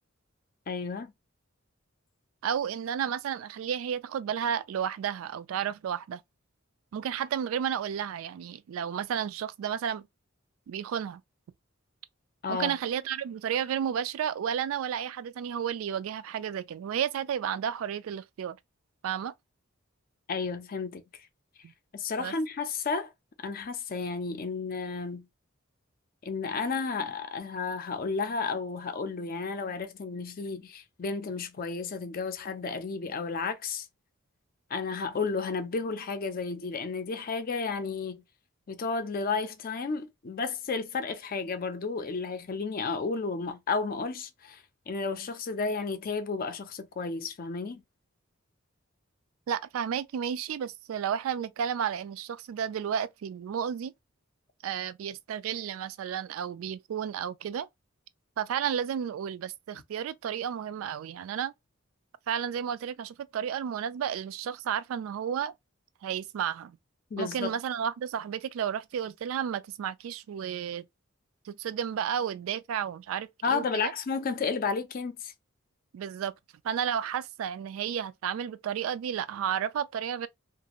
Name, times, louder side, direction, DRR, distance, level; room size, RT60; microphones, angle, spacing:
voice 1, 0.7-1.1 12.4-12.8 20.3-21.0 21.9-23.1 23.4-25.3 26.2-33.9 34.7-38.2 38.7-47.8 67.1-67.5 73.4-75.3, left 4 dB, 45° left, 0.5 m, -32 dB
voice 2, 2.4-6.2 6.9-10.1 10.7-11.2 12.5-18.6 19.0-19.3 21.6-21.7 22.2-22.3 49.5-53.9 54.6-57.7 58.4-61.5 62.3-65.5 66.0-66.8 67.2-70.9 71.5-73.9 75.9-76.3 76.6-80.3, right 8 dB, 80° right, 0.3 m, -32 dB
2.5 x 2.4 x 2.9 m
head